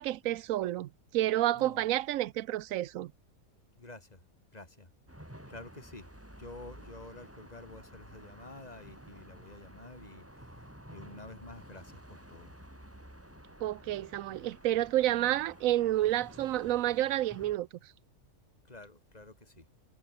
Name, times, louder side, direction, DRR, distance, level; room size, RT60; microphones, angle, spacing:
voice 1, 0.0-3.1 13.6-17.7, right 14 dB, 75° right, 1.0 m, -30 dB
voice 2, 3.8-4.2 4.5-4.9 5.5-6.1 6.4-12.6 18.6-19.7, left 2 dB, 30° left, 3.8 m, -50 dB
sound 1, 5.1-17.6, equal, 10° right, 4.5 m, -52 dB
omnidirectional pair, 1.5 m